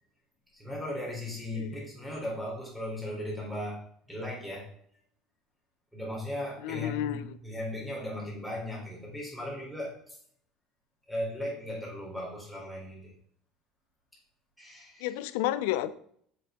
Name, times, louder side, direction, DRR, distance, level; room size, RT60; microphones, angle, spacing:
voice 1, 0.5-4.7 5.9-10.2 11.1-13.1 14.6-15.2, left 1 dB, ahead, 3.7 m, -37 dB
voice 2, 6.6-7.4 15.0-15.9, left 12 dB, 85° left, 0.6 m, -31 dB
7.9 x 7.7 x 3.8 m
cardioid pair, 150°, 0 cm